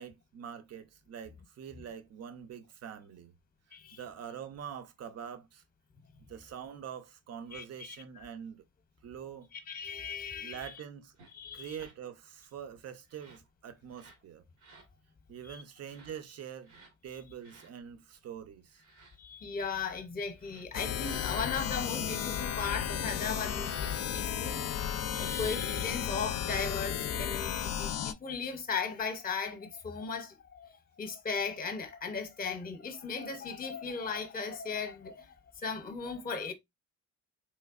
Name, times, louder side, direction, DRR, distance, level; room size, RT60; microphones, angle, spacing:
voice 1, 0.0-3.3 3.7-5.6 6.3-8.6 9.0-9.5 10.4-11.1 11.5-14.4 15.3-16.7 17.0-18.8, right 8 dB, 55° right, 0.6 m, -45 dB
voice 2, 9.5-10.7 11.3-11.8 15.5-15.6 19.2-24.8 25.1-36.5, left 5 dB, 30° left, 0.7 m, -37 dB
sound 1, 11.2-11.3 11.8-12.0 13.0-13.5 13.9-14.2 14.6-14.9 15.8-16.1 16.6-16.9 17.4-17.7 18.7-19.2 20.3-22.4 23.2-24.0 24.9-25.7, right 4 dB, 80° right, 1.3 m, -56 dB
sound 2, 20.7-28.1, left 9 dB, 55° left, 0.5 m, -34 dB
3.3 x 3.1 x 2.4 m
cardioid pair, 90°, 30 cm